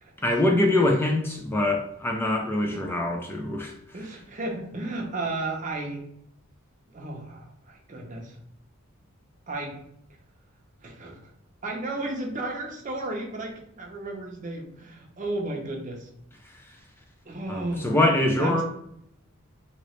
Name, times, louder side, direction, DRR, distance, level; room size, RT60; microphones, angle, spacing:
voice 1, 0.2-3.7 17.5-18.6, left 1 dB, 10° left, 1 dB, 0.4 m, -24 dB
voice 2, 3.9-6.0 6.9-8.4 9.5-9.7 10.8-11.2 11.6-16.1 17.3-17.9 18.4-18.6, right 2 dB, 35° right, 1 dB, 0.6 m, -33 dB
2.9 x 2.9 x 3.0 m, 0.74 s
head